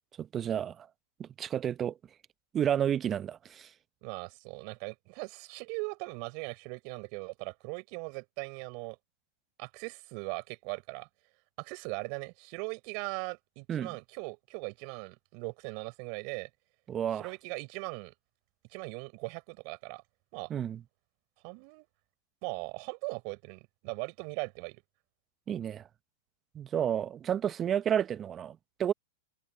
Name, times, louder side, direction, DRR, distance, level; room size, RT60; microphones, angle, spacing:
voice 1, 0.2-0.9 1.2-1.9 2.5-3.7 13.7-14.0 16.9-17.3 20.5-20.8 25.5-25.8 26.5-28.9, right 9 dB, 25° right, 1.0 m, -31 dB
voice 2, 4.0-9.0 9.6-11.1 11.6-16.5 17.2-18.1 18.7-20.0 20.3-20.5 21.4-21.9 22.4-24.8, right 38 dB, 50° right, 4.6 m, -39 dB
hypercardioid pair, 110°, 0 cm